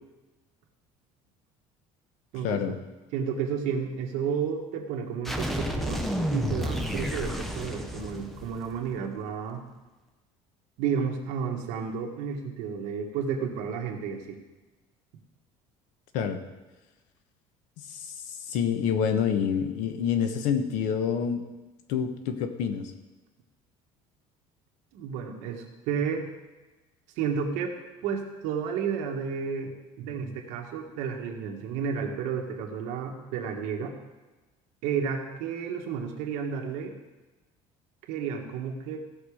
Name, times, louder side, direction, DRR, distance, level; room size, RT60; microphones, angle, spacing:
voice 1, 2.4-2.8 16.1-16.4 17.9-21.4 21.9-22.9, left 7 dB, 75° left, 8 dB, 1.1 m, -27 dB
voice 2, 3.1-6.0 6.3-9.6 10.8-14.4 24.9-26.3 27.2-27.8 28.0-33.9 34.8-36.9 38.1-39.0, right 6 dB, 70° right, 2 dB, 1.6 m, -31 dB
sound 1, 5.3-9.0, equal, ahead, 0.7 m, -31 dB
16.0 x 6.0 x 5.0 m, 1.2 s
cardioid pair, 175°, 13 cm